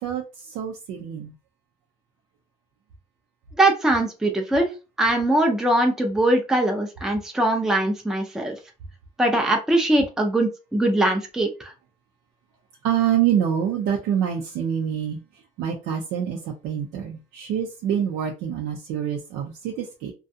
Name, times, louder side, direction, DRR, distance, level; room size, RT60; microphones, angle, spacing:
voice 1, 0.0-1.3 12.8-15.2 15.6-20.1, right 9 dB, 90° right, 0.5 m, -26 dB
voice 2, 3.6-4.7 5.0-8.5 9.2-11.7, right 1 dB, 5° right, 0.5 m, -21 dB
2.4 x 2.3 x 2.6 m
cardioid pair, 110°, 17 cm